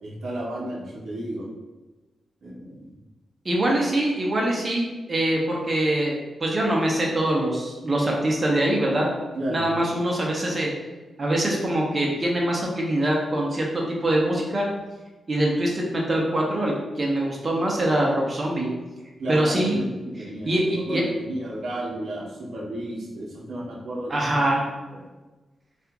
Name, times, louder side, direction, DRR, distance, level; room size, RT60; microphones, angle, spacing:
voice 1, 0.0-1.5 2.4-2.9 9.3-9.7 19.2-24.5 24.9-25.0, right 1 dB, 60° right, -3 dB, 0.7 m, -33 dB
voice 2, 3.4-9.1 9.5-10.7 11.2-14.7 15.3-18.7 19.3-19.8 20.4-21.0 24.1-24.7, right 1 dB, 25° right, -2 dB, 0.6 m, -23 dB
2.8 x 2.4 x 3.5 m, 1.2 s
wide cardioid pair, 150°, 0 cm